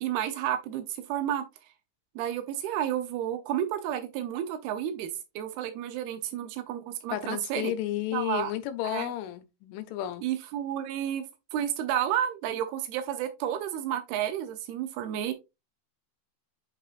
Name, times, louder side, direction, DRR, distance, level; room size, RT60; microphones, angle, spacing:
voice 1, 0.0-1.4 2.2-5.1 5.4-7.7 8.1-8.5 8.8-9.1 10.2-11.2 11.5-15.3, right 10 dB, 90° right, 2.2 m, -31 dB
voice 2, 7.1-10.3, left 13 dB, 85° left, 3.1 m, -32 dB
8.3 x 5.0 x 2.4 m
omnidirectional pair, 5.5 m